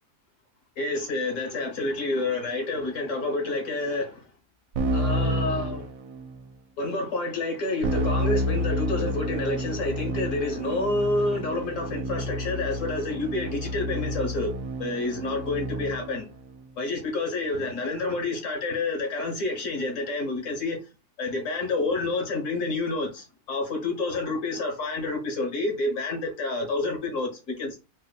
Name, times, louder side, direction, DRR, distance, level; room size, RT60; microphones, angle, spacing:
voice 1, 0.8-4.3 4.9-5.9 6.8-14.5 14.8-16.2 16.8-20.8 21.2-27.8, left 2 dB, 60° left, 1.5 m, -29 dB
Keyboard (musical), 4.8-6.4 7.8-16.2, equal, 75° right, 1.0 m, -30 dB
3.9 x 2.8 x 2.3 m
omnidirectional pair, 1.5 m